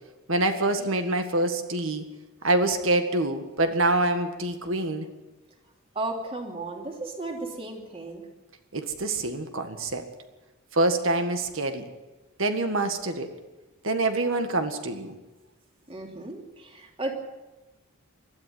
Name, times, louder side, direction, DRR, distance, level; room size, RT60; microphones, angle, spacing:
voice 1, 0.3-2.1 2.4-5.1 8.7-10.0 10.7-11.9 12.4-13.3 13.8-15.2, right 2 dB, 60° right, 7 dB, 1.9 m, -25 dB
voice 2, 5.9-8.3 15.9-17.1, right 2 dB, 25° right, 2 dB, 3.1 m, -34 dB
21.0 x 13.5 x 9.5 m, 1.1 s
head